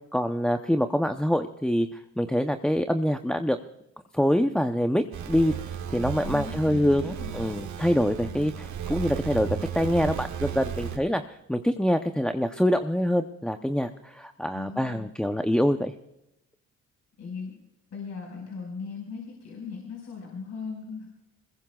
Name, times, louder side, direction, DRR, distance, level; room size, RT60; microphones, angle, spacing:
voice 1, 0.1-3.6 4.1-9.5 9.7-15.9, equal, 5° left, 6 dB, 0.7 m, -25 dB
sound 1, 5.1-11.0, right 9 dB, 70° right, 2.0 m, -34 dB
voice 2, 6.2-7.4 8.3-8.6 14.5-15.1 17.2-17.5 17.9-21.1, left 5 dB, 60° left, -1 dB, 5.2 m, -38 dB
22.0 x 21.0 x 2.4 m, 0.87 s
cardioid pair, 90°, 30 cm